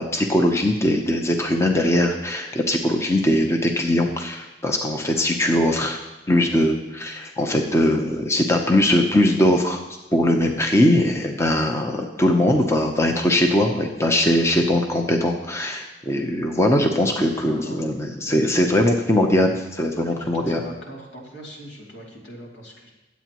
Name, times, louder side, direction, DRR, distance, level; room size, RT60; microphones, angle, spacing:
voice 1, 0.0-6.0 6.3-9.8 10.1-20.7, left 1 dB, 15° left, 3 dB, 0.8 m, -20 dB
voice 2, 20.0-22.9, equal, 80° left, -2 dB, 2.7 m, -40 dB
22.5 x 8.3 x 3.0 m, 1.0 s
head